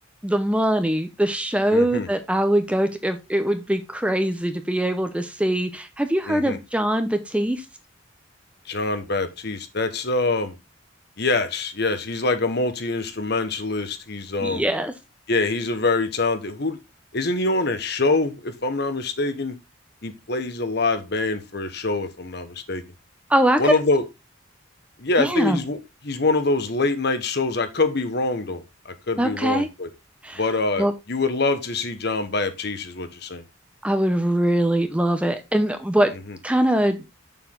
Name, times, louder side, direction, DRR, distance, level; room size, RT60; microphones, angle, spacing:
voice 1, 0.2-7.6 14.4-14.9 23.3-23.7 25.2-25.6 29.2-29.7 30.2-30.4 30.8-30.9 33.8-36.1 36.4-37.0, right 1 dB, 5° right, 0.8 m, -22 dB
voice 2, 1.7-2.1 6.3-6.6 8.7-10.5 11.2-14.7 15.3-16.8 17.1-19.6 20.0-22.8 23.6-24.0 25.0-25.8 26.0-29.9 30.4-33.4 36.3-36.4, left 3 dB, 55° left, 1.2 m, -25 dB
6.9 x 6.7 x 3.8 m
head